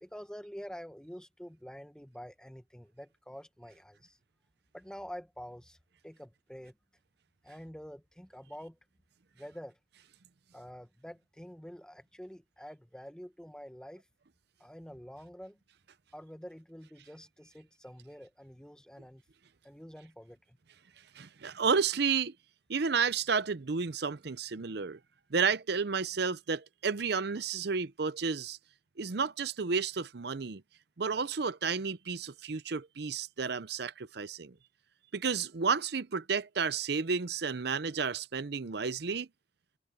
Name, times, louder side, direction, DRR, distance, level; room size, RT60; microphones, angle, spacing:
voice 1, 0.0-4.2 4.7-5.8 6.0-6.7 7.4-8.8 9.3-9.8 10.5-14.0 14.6-15.6 16.1-19.2 19.6-20.6, equal, 5° left, 1.1 m, -47 dB
voice 2, 21.2-22.3 22.7-25.0 25.3-28.6 29.0-30.6 31.0-34.5 35.1-39.3, right 5 dB, 55° right, 0.6 m, -31 dB
head